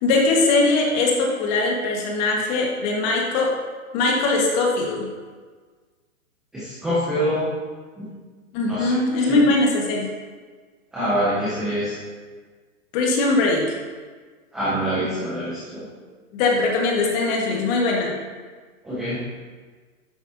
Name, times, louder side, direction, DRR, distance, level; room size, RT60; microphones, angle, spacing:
voice 1, 0.0-3.5 3.9-5.1 8.5-10.1 12.9-13.7 16.3-18.1, left 3 dB, 30° left, -1 dB, 1.6 m, -21 dB
voice 2, 6.5-7.5 8.0-8.1 8.7-9.4 10.9-12.0 14.5-15.9 18.8-19.2, equal, ahead, -11 dB, 0.4 m, -25 dB
10.0 x 7.2 x 2.7 m, 1.5 s
hypercardioid pair, 150°, 42 cm